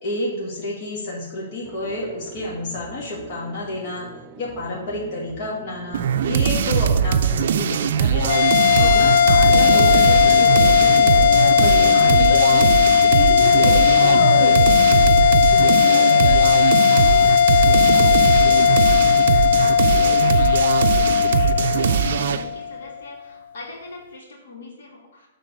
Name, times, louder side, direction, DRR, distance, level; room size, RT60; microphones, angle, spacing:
voice 1, 0.0-4.1 4.4-8.3 8.8-12.7 13.1-16.5, left 2 dB, 45° left, -4 dB, 1.9 m, -30 dB
sound 1, 1.6-14.6, right 4 dB, 20° right, 0.8 m, -43 dB
sound 2, 5.9-22.5, right 8 dB, 60° right, 0.4 m, -21 dB
sound 3, 8.3-22.9, left 8 dB, 60° left, 0.3 m, -16 dB
voice 2, 8.9-9.4 17.5-25.3, left 2 dB, 75° left, -2 dB, 2.6 m, -42 dB
7.6 x 3.9 x 6.4 m, 1.0 s
hypercardioid pair, 155°, 0 cm